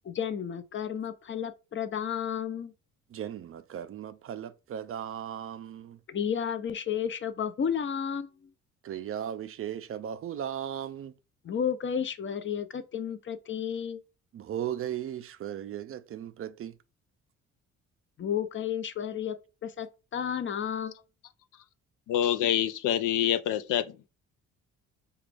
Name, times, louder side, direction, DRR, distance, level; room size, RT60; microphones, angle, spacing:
voice 1, 0.0-2.7 6.1-8.3 11.4-14.0 18.2-19.4 19.6-19.9 20.1-20.9, left 8 dB, 40° left, 0.6 m, -32 dB
voice 2, 3.1-6.0 8.8-11.1 14.3-16.7, right 10 dB, 45° right, 0.4 m, -37 dB
voice 3, 22.1-24.1, left 10 dB, 85° left, 0.5 m, -26 dB
5.0 x 2.3 x 3.3 m
cardioid pair, 90°, 30 cm